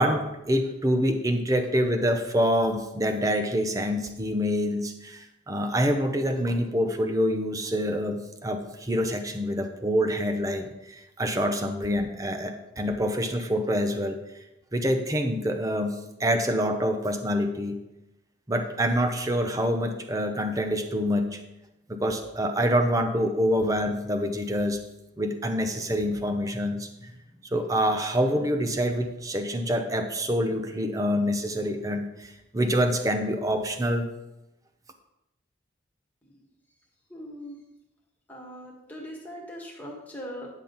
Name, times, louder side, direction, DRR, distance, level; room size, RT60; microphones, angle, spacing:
voice 1, 0.0-14.2 14.7-17.8 18.5-21.4 21.9-24.8 25.2-27.1 27.5-34.1, equal, 20° right, 6 dB, 0.7 m, -26 dB
voice 2, 37.1-37.6 38.3-40.5, equal, 10° left, -3 dB, 1.8 m, -40 dB
10.0 x 7.4 x 4.0 m, 0.93 s
head